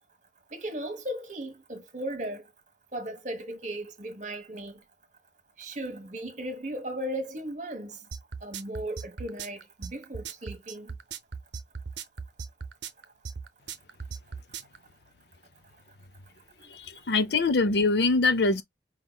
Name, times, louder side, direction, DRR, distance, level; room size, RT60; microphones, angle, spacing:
voice 1, 0.5-2.4 2.9-4.8 5.6-8.0 8.4-10.9, right 1 dB, 45° right, 1.3 m, -36 dB
sound 1, 8.1-14.8, right 6 dB, 85° right, 0.6 m, -38 dB
voice 2, 17.1-18.6, left 3 dB, 70° left, 0.6 m, -23 dB
4.6 x 3.8 x 2.2 m
head